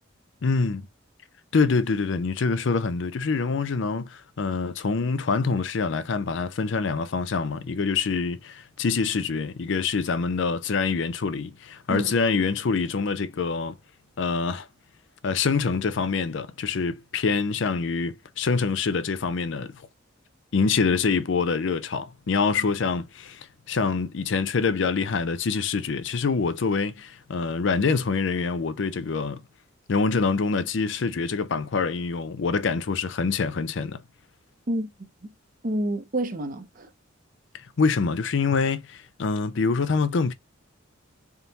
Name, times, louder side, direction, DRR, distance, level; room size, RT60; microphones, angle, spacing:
voice 1, 0.4-0.9 1.5-13.8 14.2-14.7 15.2-19.8 20.5-29.4 29.9-34.0 37.5-40.3, left 4 dB, 65° left, 0.5 m, -25 dB
voice 2, 34.7-35.3 35.6-36.9, right 1 dB, 40° right, 0.7 m, -29 dB
4.0 x 3.6 x 2.9 m
head